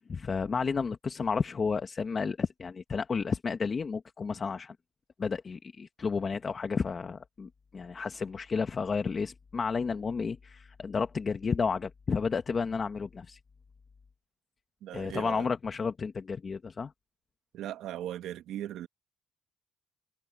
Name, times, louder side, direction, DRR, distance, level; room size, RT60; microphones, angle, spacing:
voice 1, 0.1-4.8 5.2-13.4 14.9-16.9, left 5 dB, 40° left, 1.5 m, -32 dB
voice 2, 14.8-15.5 17.5-18.9, right 12 dB, 85° right, 1.2 m, -38 dB
cardioid pair, 90°, 0 cm